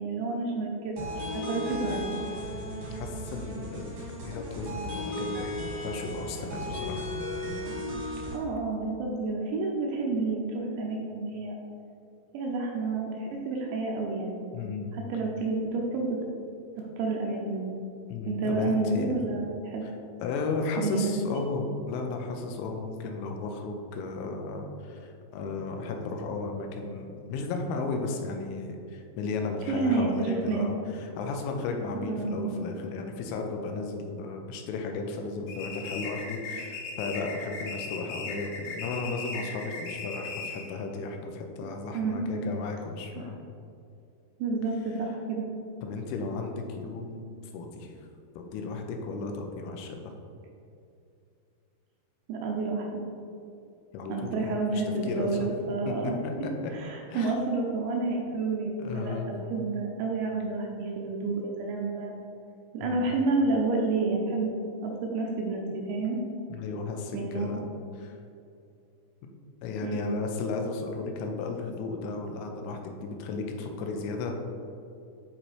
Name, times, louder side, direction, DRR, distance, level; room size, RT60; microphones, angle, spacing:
voice 1, 0.0-2.2 8.3-11.6 12.3-14.5 14.9-16.2 16.8-17.8 18.3-19.8 20.8-21.2 29.7-30.7 31.9-32.6 41.9-42.5 44.4-45.5 52.3-53.0 54.1-62.1 62.7-64.5 64.8-66.2 67.1-67.6 69.8-70.1, right 3 dB, 85° right, -1 dB, 2.7 m, -30 dB
sound 1, 1.0-8.3, equal, 65° right, 1.5 m, -35 dB
voice 2, 2.5-3.9 4.2-5.5 5.8-7.0 14.5-14.9 18.1-19.1 19.8-19.9 20.2-43.4 45.8-47.2 47.5-47.9 48.4-50.1 53.9-55.5 55.9-56.3 56.6-56.7 57.1-57.3 58.8-59.3 62.8-63.1 66.5-67.6 67.9-68.2 69.6-74.3, left 3 dB, 90° left, 3 dB, 3.1 m, -34 dB
sound 2, 35.5-40.7, left 4 dB, 75° left, 2.7 m, -37 dB
10.0 x 4.3 x 3.2 m, 2.5 s
omnidirectional pair, 5.6 m